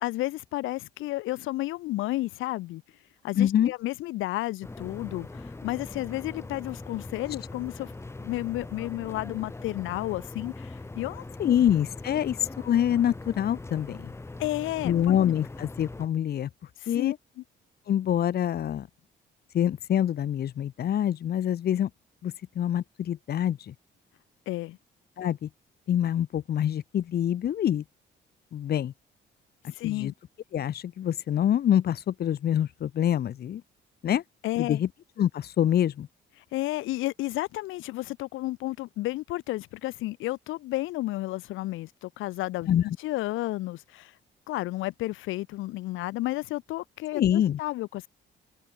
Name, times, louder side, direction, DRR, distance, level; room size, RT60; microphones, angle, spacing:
voice 1, 0.0-2.8 3.2-11.6 12.1-12.3 14.4-15.2 16.8-17.1 24.5-24.8 29.7-30.1 34.4-34.8 36.4-44.2 44.5-48.1, left 17 dB, 90° left, 0.6 m, -32 dB
voice 2, 3.4-3.7 11.4-14.1 14.8-16.5 16.9-17.2 17.9-18.9 19.5-21.9 22.2-23.7 25.2-25.5 25.9-27.8 28.5-28.9 29.8-30.1 30.5-33.6 34.0-34.2 34.6-34.9 35.2-36.1 42.7-42.8 47.1-47.6, left 10 dB, 50° left, 0.7 m, -25 dB
sound 1, 4.6-16.1, left 2 dB, 15° left, 0.8 m, -41 dB
cardioid pair, 90°, 20 cm